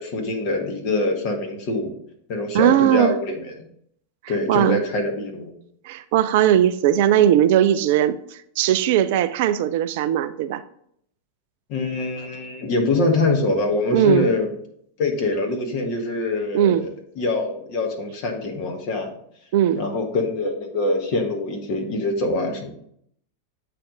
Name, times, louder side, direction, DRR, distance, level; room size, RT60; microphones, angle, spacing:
voice 1, 0.0-1.9 2.3-3.6 4.3-5.5 11.7-14.5 15.0-16.9 17.2-19.1 19.8-22.7, left 2 dB, 45° left, 2 dB, 1.5 m, -24 dB
voice 2, 2.5-3.1 4.5-4.8 5.8-8.2 8.6-10.6 13.9-14.3 16.5-16.9 19.5-19.8, right 11 dB, 50° right, 12 dB, 0.3 m, -18 dB
8.2 x 3.3 x 3.9 m, 0.68 s
figure-of-eight pair, 90°, 0 cm